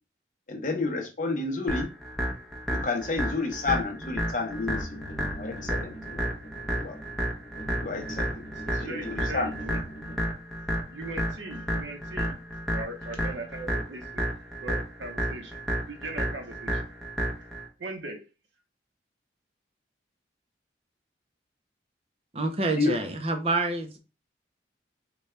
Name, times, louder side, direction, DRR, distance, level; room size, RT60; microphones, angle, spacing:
voice 1, 0.5-1.9 2.7-5.1 5.4-6.3 6.8-7.0 7.8-8.4 8.8-9.5 22.8-23.0, left 3 dB, 45° left, 0.7 m, -30 dB
sound 1, 1.7-17.7, equal, ahead, 0.7 m, -32 dB
sound 2, 4.7-10.2, equal, 75° left, 1.0 m, -43 dB
voice 2, 8.5-9.8 10.9-12.4 12.7-14.3 14.6-15.6 15.9-16.8 17.8-18.2, right 2 dB, 85° right, 0.8 m, -39 dB
voice 3, 22.3-24.0, right 2 dB, 30° right, 0.6 m, -27 dB
4.0 x 2.3 x 3.2 m
head